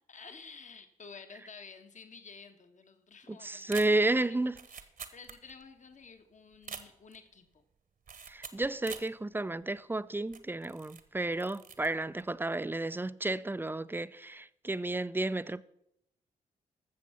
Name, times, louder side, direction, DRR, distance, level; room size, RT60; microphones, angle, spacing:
voice 1, 0.1-4.9 5.1-7.6, left 5 dB, 45° left, 1.3 m, -52 dB
voice 2, 3.3-4.6 8.3-15.6, right 2 dB, 10° right, 0.5 m, -32 dB
sound 1, 3.6-5.8 6.0-6.1 6.5-7.3 8.1-9.2 9.6-9.7 10.3-11.1 11.3-11.9 12.2-12.5, right 6 dB, 50° right, 1.3 m, -46 dB
12.5 x 7.2 x 5.7 m
hypercardioid pair, 40°, 18 cm